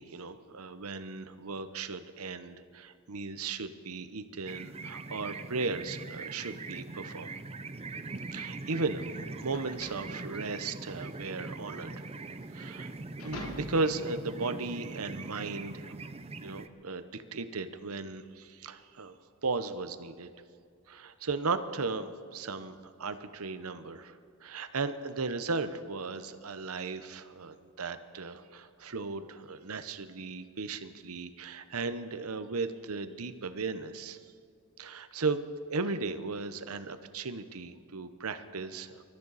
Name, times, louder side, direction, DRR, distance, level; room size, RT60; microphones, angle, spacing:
voice 1, 0.0-7.3 8.3-12.0 12.5-12.9 13.2-15.9 16.4-19.2 19.4-20.3 20.9-34.2 34.8-35.4 35.7-39.0, right 3 dB, 85° right, 10 dB, 0.9 m, -36 dB
sound 1, 4.5-16.7, right 3 dB, 30° right, 0.6 m, -41 dB
sound 2, 8.1-14.1, left 2 dB, 85° left, 1.9 m, -47 dB
24.5 x 13.5 x 4.1 m, 2.3 s
head